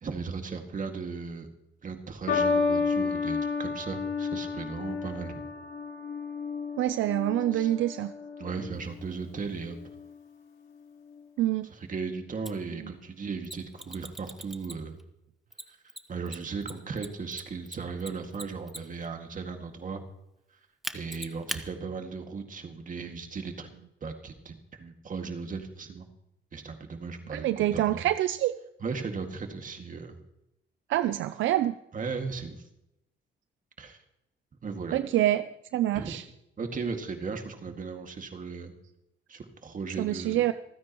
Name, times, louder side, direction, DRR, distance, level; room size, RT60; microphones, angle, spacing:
voice 1, 0.0-1.5 1.8-5.4 7.5-7.7 8.4-9.8 11.7-15.0 15.7-15.8 16.1-20.0 20.9-23.7 24.0-26.1 26.5-28.0 28.8-30.2 31.9-32.6 33.8-34.0 34.6-35.0 35.9-36.2 36.6-38.7 39.3-40.4, right 5 dB, 40° right, 5 dB, 2.1 m, -36 dB
sound 1, 2.3-8.8 9.6-10.1, left 5 dB, 70° left, 4.2 m, -31 dB
voice 2, 6.8-8.1 11.4-11.7 27.3-28.5 30.9-31.7 34.9-36.2 40.0-40.5, right 13 dB, 75° right, 13 dB, 0.5 m, -26 dB
Mechanisms, 12.4-12.5 13.4-15.0 15.5-19.1 20.8-21.6, equal, ahead, 1.1 m, -39 dB
27.0 x 9.6 x 3.1 m, 0.87 s
cardioid pair, 90°, 20 cm